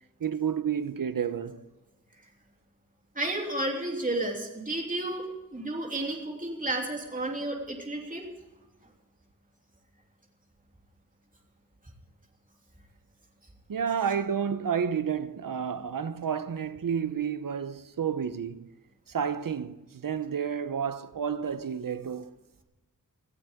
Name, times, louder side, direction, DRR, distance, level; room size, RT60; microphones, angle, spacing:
voice 1, 0.2-1.6 13.7-18.7 19.1-22.3, right 7 dB, 85° right, 0.9 m, -30 dB
voice 2, 3.1-8.3, right 1 dB, 25° right, 3.1 m, -32 dB
18.5 x 15.0 x 3.7 m
wide cardioid pair, 90°, 33 cm